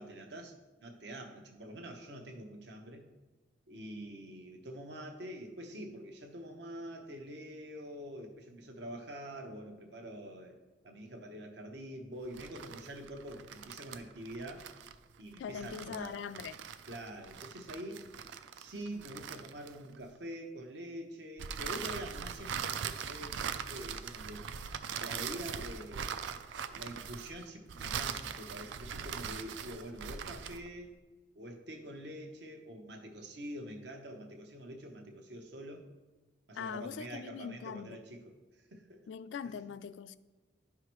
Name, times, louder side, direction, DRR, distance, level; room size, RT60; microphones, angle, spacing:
voice 1, 0.0-3.0 3.7-10.6 10.8-14.7 15.2-16.2 16.9-18.1 18.5-24.5 25.0-30.9 31.3-35.8 36.5-38.2 38.5-39.1 39.4-39.5, right 1 dB, 70° right, 0.9 m, -45 dB
sound 1, 12.2-20.1 21.4-30.7, right 7 dB, 85° right, 0.4 m, -41 dB
voice 2, 15.4-16.6 36.5-38.0 39.1-40.2, left 7 dB, 80° left, 0.3 m, -42 dB
11.0 x 4.8 x 3.0 m
head